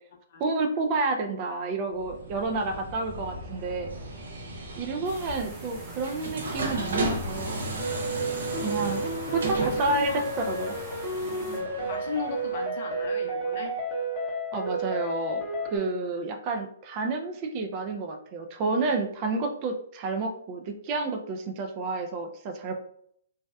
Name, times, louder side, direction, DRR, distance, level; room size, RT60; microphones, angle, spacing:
voice 1, 0.4-3.9 4.8-7.6 8.6-9.0 9.3-10.7 14.5-15.4 15.7-22.7, right 3 dB, 35° right, 4 dB, 0.3 m, -30 dB
sound 1, 1.9-12.7, right 2 dB, 75° right, 0.6 m, -35 dB
sound 2, 5.0-11.6, right 2 dB, 15° right, 0.7 m, -47 dB
sound 3, 7.8-15.8, right 2 dB, 20° left, 0.8 m, -31 dB
voice 2, 9.6-10.3 11.2-13.7 18.8-19.0, left 5 dB, 55° left, 2 dB, 0.6 m, -37 dB
2.6 x 2.0 x 2.3 m, 0.67 s
hypercardioid pair, 145°, 0 cm